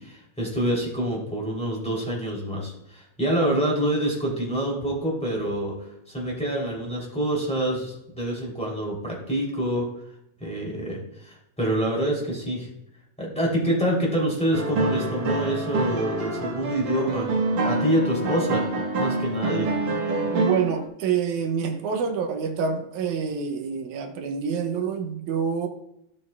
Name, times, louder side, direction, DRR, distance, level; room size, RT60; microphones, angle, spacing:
voice 1, 0.0-9.9 10.4-12.7 13.2-17.3 17.6-19.7, right 1 dB, ahead, 3.1 m, -26 dB
sound 1, 14.5-20.8, right 2 dB, 70° right, 2.7 m, -26 dB
voice 2, 20.3-25.7, right 6 dB, 85° right, 2.3 m, -27 dB
16.5 x 7.1 x 2.4 m
omnidirectional pair, 3.3 m